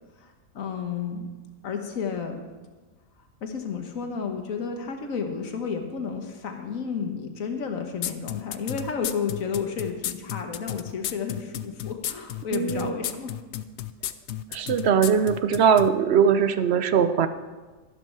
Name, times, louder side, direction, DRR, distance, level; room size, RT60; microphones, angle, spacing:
voice 1, 0.2-1.3 1.6-2.4 3.4-13.3, left 6 dB, 85° left, 4 dB, 1.6 m, -32 dB
sound 1, 8.0-15.9, left 12 dB, 65° left, 0.8 m, -32 dB
voice 2, 12.5-12.9 14.5-17.3, right 7 dB, 60° right, 11 dB, 0.9 m, -21 dB
12.5 x 11.5 x 4.6 m, 1.3 s
omnidirectional pair, 1.4 m